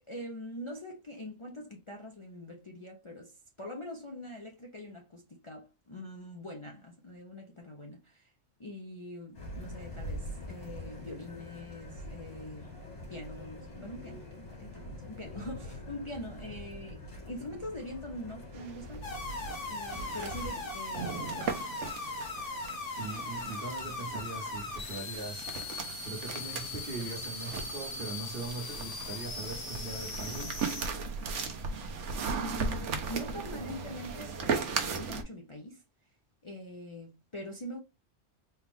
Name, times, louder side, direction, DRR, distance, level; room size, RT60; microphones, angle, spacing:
voice 1, 0.1-8.3 8.6-12.7 13.1-19.1 19.7-21.6 32.3-35.8 36.4-37.8, left 1 dB, 35° left, 0.6 m, -43 dB
sound 1, 9.3-20.6, left 1 dB, 75° left, 2.2 m, -44 dB
sound 2, 18.5-35.2, right 5 dB, 80° right, 1.1 m, -38 dB
sound 3, 19.0-30.9, left 3 dB, 50° left, 1.2 m, -39 dB
voice 2, 23.0-25.5 26.0-31.0, right 3 dB, 50° right, 1.4 m, -41 dB
4.3 x 2.4 x 3.4 m
omnidirectional pair, 1.2 m